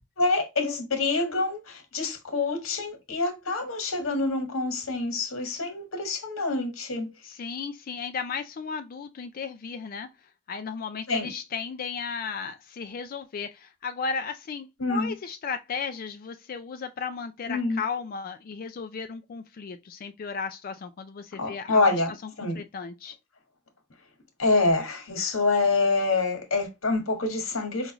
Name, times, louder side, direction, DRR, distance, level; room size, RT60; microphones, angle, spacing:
voice 1, 0.2-7.1 11.1-11.3 14.8-15.1 17.5-17.8 21.4-22.1 22.4-22.6 24.4-27.9, left 3 dB, 80° left, 1.4 m, -26 dB
voice 2, 7.2-10.1 10.5-22.0 22.4-23.2, left 5 dB, 45° left, 0.3 m, -35 dB
5.2 x 2.4 x 2.9 m
head